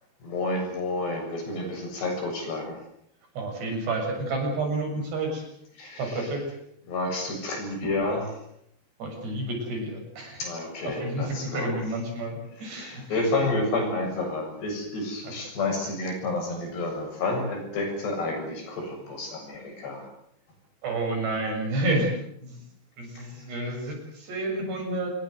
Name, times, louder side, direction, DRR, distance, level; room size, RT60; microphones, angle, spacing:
voice 1, 0.2-2.8 5.8-6.3 6.9-8.3 10.4-11.7 12.7-20.0, left 2 dB, 65° left, 2 dB, 9.6 m, -30 dB
voice 2, 3.4-5.4 6.0-6.5 9.0-10.5 10.8-13.2 15.2-15.4 20.8-22.1 22.4-22.6 23.0-25.1, right 2 dB, 65° right, 2 dB, 9.4 m, -30 dB
26.5 x 22.5 x 8.0 m, 0.74 s
omnidirectional pair, 5.1 m